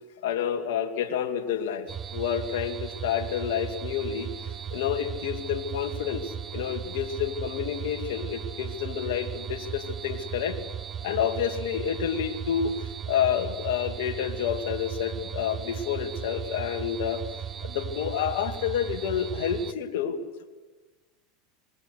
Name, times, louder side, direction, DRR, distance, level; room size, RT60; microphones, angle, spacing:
voice 1, 0.2-4.3 4.7-10.6 11.0-12.7 13.1-17.2 17.6-20.2, left 8 dB, 75° left, 4 dB, 2.6 m, -29 dB
sound 1, 1.9-19.7, right 8 dB, 30° right, 0.7 m, -37 dB
25.0 x 21.0 x 6.6 m, 1.3 s
hypercardioid pair, 100°, 0 cm